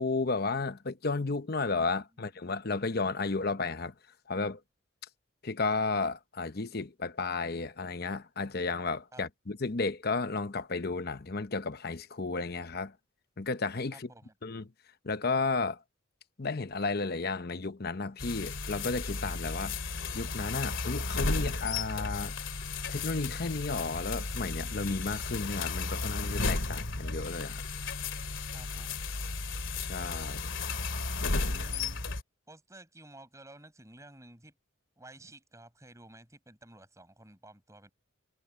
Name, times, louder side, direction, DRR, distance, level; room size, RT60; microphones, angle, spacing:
voice 1, 0.0-3.9 4.3-4.6 5.4-12.9 13.4-14.1 14.4-14.6 15.0-15.8 16.4-19.8 20.1-22.3 22.9-27.6 29.9-30.5, left 3 dB, 50° left, 0.9 m, -33 dB
voice 2, 13.9-14.3 28.5-29.0 31.2-32.0 32.5-34.5 35.0-37.9, right 1 dB, 15° right, 7.1 m, -53 dB
sound 1, 18.2-32.2, left 3 dB, 70° left, 2.6 m, -34 dB
head